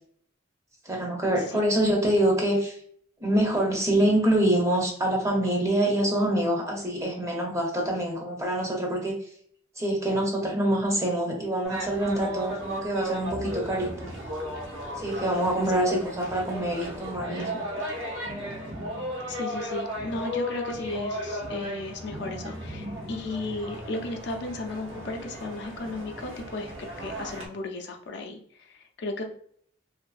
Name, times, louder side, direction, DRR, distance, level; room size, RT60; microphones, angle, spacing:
voice 1, 0.8-2.8 3.2-9.2 9.8-14.1 15.0-17.6, right 1 dB, 15° right, 0 dB, 0.5 m, -25 dB
Drums coming, 11.6-27.5, equal, 75° right, 0.7 m, -35 dB
voice 2, 19.3-26.7 27.0-29.2, left 2 dB, 60° left, 3 dB, 0.4 m, -35 dB
2.6 x 2.5 x 2.3 m, 0.62 s
head